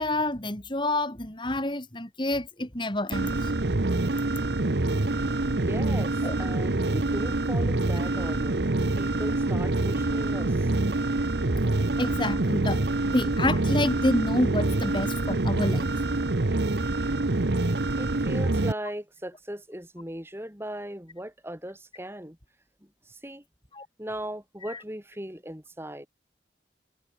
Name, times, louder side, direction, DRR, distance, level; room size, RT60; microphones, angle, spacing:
voice 1, 0.0-3.5 6.2-6.3 12.0-15.9 23.7-23.9 24.7-24.8, left 1 dB, 30° left, 3.8 m, -28 dB
sound 1, 3.1-18.7, right 2 dB, 70° right, 1.1 m, -26 dB
voice 2, 5.5-8.6 9.0-10.7 18.0-22.4 23.1-23.4 24.0-26.1, right 1 dB, 15° right, 4.4 m, -38 dB
head